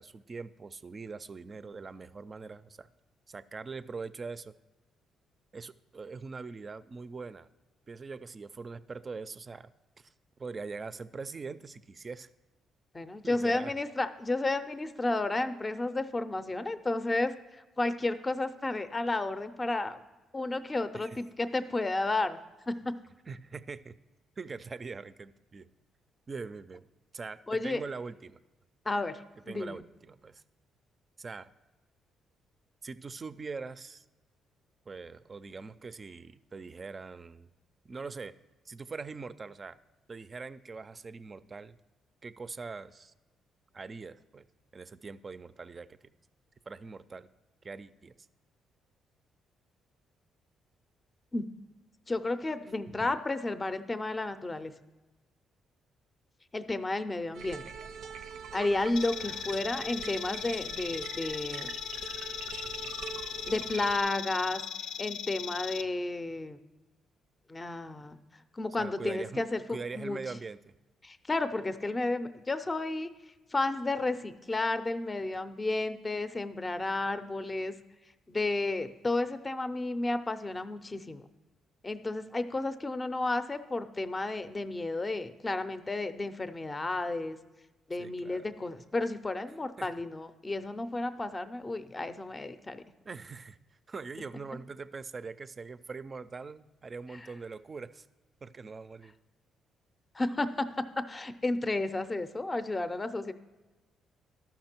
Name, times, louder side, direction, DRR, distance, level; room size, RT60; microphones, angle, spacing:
voice 1, 0.0-2.9 3.3-4.5 5.5-7.5 7.9-9.7 10.0-10.1 10.4-12.3 13.2-13.7 20.9-21.2 23.3-23.9 24.4-25.7 26.3-26.9 27.1-28.4 29.5-30.4 31.2-31.5 32.8-34.0 34.9-37.5 37.8-38.3 38.7-39.8 40.1-41.8 42.2-43.1 43.7-44.4 44.7-46.0 46.7-47.3 47.6-48.1 52.9-53.1 59.2-59.4 68.8-70.7 88.0-88.5 89.8-89.9 93.1-93.6 93.9-98.1 98.4-99.1, right 4 dB, 35° right, 14 dB, 0.4 m, -42 dB
voice 2, 12.9-17.3 17.8-20.0 20.3-22.4 22.7-23.0 27.5-27.8 28.9-29.8 51.3-51.4 52.1-54.7 56.5-57.6 58.5-61.7 63.5-64.6 65.0-66.6 67.5-68.2 68.5-70.2 71.0-73.1 73.5-77.7 78.3-81.2 81.8-87.4 87.9-92.8 100.1-103.3, left 2 dB, 25° left, 11 dB, 0.5 m, -32 dB
sound 1, 57.3-64.0, right 6 dB, 90° right, 0.6 m, -43 dB
sound 2, 59.0-65.8, left 9 dB, 75° left, 0.3 m, -39 dB
13.0 x 5.8 x 4.4 m, 1.1 s
cardioid pair, 90°, 0 cm